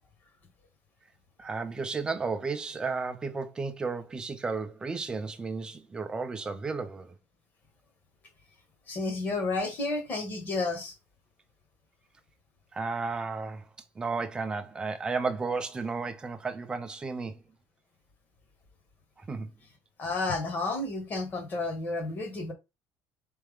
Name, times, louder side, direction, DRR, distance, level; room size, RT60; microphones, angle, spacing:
voice 1, 1.4-7.1 12.7-13.7 14.0-17.4 19.2-19.5, right 4 dB, 15° right, 0.5 m, -33 dB
voice 2, 8.9-10.9 20.0-22.5, left 3 dB, 30° left, 1.3 m, -31 dB
4.2 x 3.4 x 3.6 m
cardioid pair, 170°, 6 cm